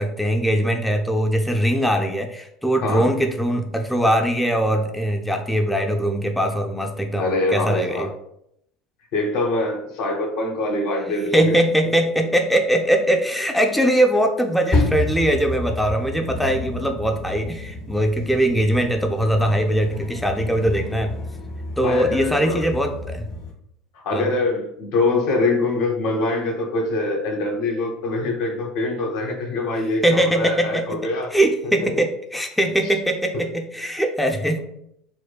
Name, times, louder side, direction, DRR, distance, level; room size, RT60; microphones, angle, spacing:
voice 1, 0.0-8.1 11.3-21.1 21.8-23.3 24.1-24.3 30.0-34.6, right 1 dB, ahead, 3 dB, 0.3 m, -21 dB
voice 2, 7.2-8.1 9.1-11.6 21.8-22.7 23.9-31.3 31.8-31.9, left 2 dB, 65° left, 2 dB, 0.8 m, -24 dB
sound 1, 14.7-23.5, left 2 dB, 50° left, 1.1 m, -29 dB
4.3 x 2.2 x 2.3 m, 0.76 s
hypercardioid pair, 75°, 2 cm